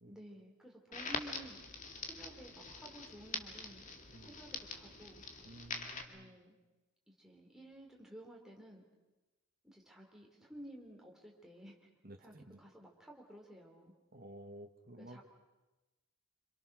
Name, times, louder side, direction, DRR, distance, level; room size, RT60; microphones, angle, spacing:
voice 1, 0.0-1.6 2.0-3.9 4.2-5.2 6.1-6.6 7.1-8.8 9.6-11.8 12.2-13.9 15.0-15.2, right 1 dB, ahead, -1 dB, 4.0 m, -53 dB
Crackle, 0.9-6.0, left 4 dB, 35° left, 2.2 m, -44 dB
voice 2, 5.4-6.4 12.0-12.6 14.1-15.2, right 1 dB, 40° right, 5 dB, 1.8 m, -53 dB
27.0 x 26.5 x 6.5 m, 1.1 s
head